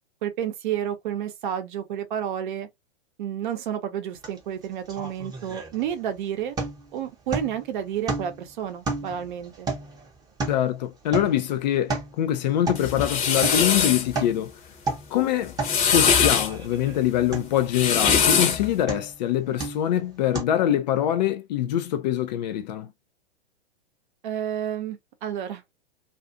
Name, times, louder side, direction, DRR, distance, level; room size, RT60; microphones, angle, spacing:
voice 1, 0.2-2.7 3.2-6.6 6.9-9.7 24.2-25.6, right 9 dB, 50° right, 0.8 m, -30 dB
sound 1, 4.2-4.4 4.6-6.1 6.6-6.9 7.3-7.7 8.1-8.5 8.8-10.7 11.1-11.4 11.7-12.2 12.7-12.9 13.4-13.7 14.0-14.4 14.8-15.1 15.6-15.8 16.3-17.0 17.3-17.6 18.1-18.4 18.9-19.2 19.6-19.9 20.3-20.4, right 3 dB, 10° right, 0.8 m, -32 dB
voice 2, 10.5-14.5 15.1-15.5 15.9-22.9, left 11 dB, 40° left, 0.4 m, -24 dB
sound 2, 12.7-14.1 15.4-16.5 17.6-18.7, left 7 dB, 25° left, 0.8 m, -21 dB
2.5 x 2.4 x 2.5 m
figure-of-eight pair, 110°, 33 cm